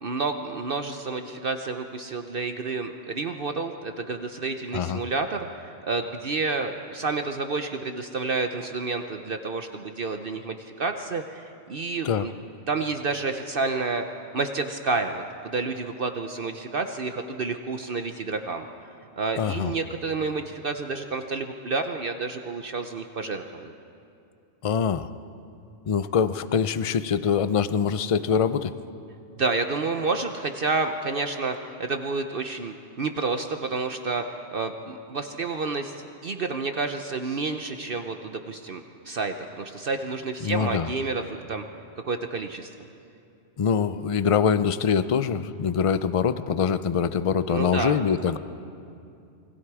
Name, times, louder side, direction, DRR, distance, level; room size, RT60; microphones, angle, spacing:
voice 1, 0.0-12.4 12.7-18.7 19.2-23.7 29.3-34.3 34.5-41.6 42.0-42.7 47.5-48.0, right 3 dB, 55° right, 6 dB, 0.9 m, -30 dB
voice 2, 19.4-19.7 24.6-25.1 25.9-28.7 40.4-40.9 43.6-48.4, left 7 dB, 40° left, 13 dB, 0.5 m, -24 dB
28.5 x 21.0 x 4.8 m, 2.6 s
omnidirectional pair, 1.2 m